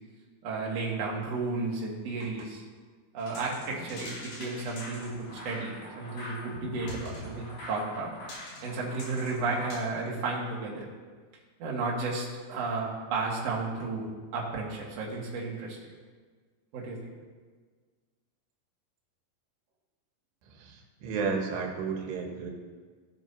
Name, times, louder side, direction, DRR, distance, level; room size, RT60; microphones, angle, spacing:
voice 1, 0.4-2.6 3.1-5.1 5.4-8.1 8.6-10.9 11.6-15.9 16.7-17.0, right 3 dB, 50° right, -4 dB, 2.3 m, -33 dB
sound 1, 3.2-9.7, left 1 dB, 80° left, 4.8 m, -43 dB
voice 2, 20.4-22.5, right 5 dB, 90° right, 1 dB, 3.3 m, -33 dB
16.0 x 7.5 x 2.8 m, 1.5 s
omnidirectional pair, 4.6 m